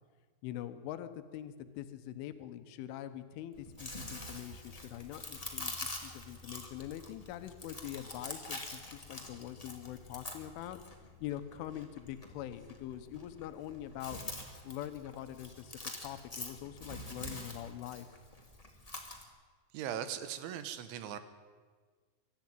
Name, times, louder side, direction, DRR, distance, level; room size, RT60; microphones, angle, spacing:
voice 1, 0.4-10.8 11.2-14.2 14.6-18.1, left 12 dB, 85° left, 10 dB, 3.6 m, -44 dB
Chewing mastication, 3.5-19.2, left 2 dB, 30° left, 0.7 m, -46 dB
voice 2, 19.7-21.2, right 9 dB, 75° right, 11 dB, 3.5 m, -39 dB
24.0 x 13.5 x 9.1 m, 1.5 s
omnidirectional pair, 5.5 m